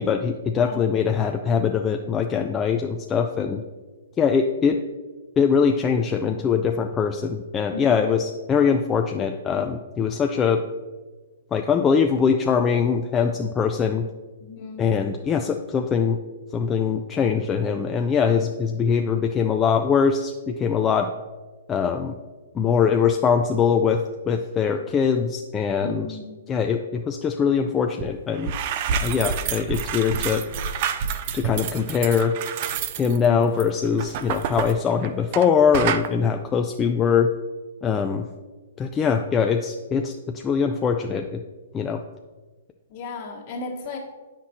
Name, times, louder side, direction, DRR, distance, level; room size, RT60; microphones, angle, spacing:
voice 1, 0.0-3.6 4.2-4.8 5.4-10.6 11.5-14.1 14.8-16.2 16.5-21.1 21.7-22.2 22.5-26.1 26.5-28.5 28.9-30.4 31.3-32.3 33.0-37.3 37.8-38.3 38.8-41.4 41.7-42.0, left 6 dB, 20° left, 4 dB, 0.3 m, -22 dB
voice 2, 7.7-8.2 14.4-14.9 25.8-26.3 33.2-33.4 42.9-44.0, left 2 dB, 45° left, -1 dB, 1.5 m, -35 dB
sound 1, 28.0-28.1 28.3-35.5 35.7-36.1, right 7 dB, 45° right, 0.4 m, -28 dB
8.3 x 5.8 x 2.9 m, 1.3 s
hypercardioid pair, 130°, 0 cm